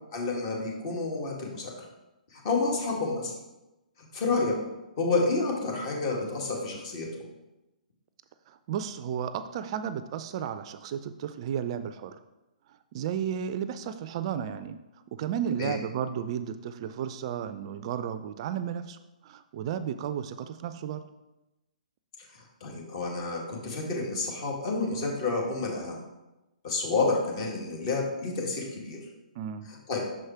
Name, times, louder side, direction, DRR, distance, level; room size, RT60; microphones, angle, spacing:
voice 1, 0.1-1.7 2.3-3.3 4.1-4.6 5.0-7.1 15.6-15.7 22.6-26.0 26.6-29.0 29.9-30.0, left 3 dB, 45° left, -1 dB, 1.9 m, -29 dB
voice 2, 8.5-12.2 12.7-14.8 15.1-21.0 29.4-29.7, right 8 dB, 40° right, 12 dB, 0.4 m, -33 dB
6.3 x 4.8 x 4.4 m, 1.0 s
figure-of-eight pair, 125°, 5 cm